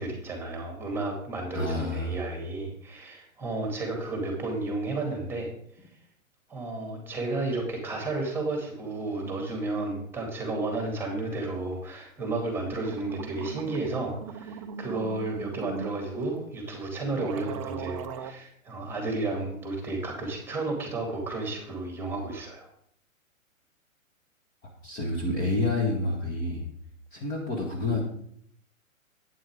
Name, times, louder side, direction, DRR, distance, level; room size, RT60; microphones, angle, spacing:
voice 1, 0.0-5.5 6.5-22.7, right 2 dB, 5° right, 2 dB, 2.3 m, -32 dB
voice 2, 1.5-2.2 24.8-26.7 27.1-28.0, left 2 dB, 20° left, -1 dB, 1.6 m, -28 dB
sound 1, 12.5-12.6 12.8-16.0 16.7-16.8 17.1-18.3, right 8 dB, 25° right, 0.5 m, -39 dB
11.0 x 9.3 x 3.6 m, 0.65 s
figure-of-eight pair, 120°, 41 cm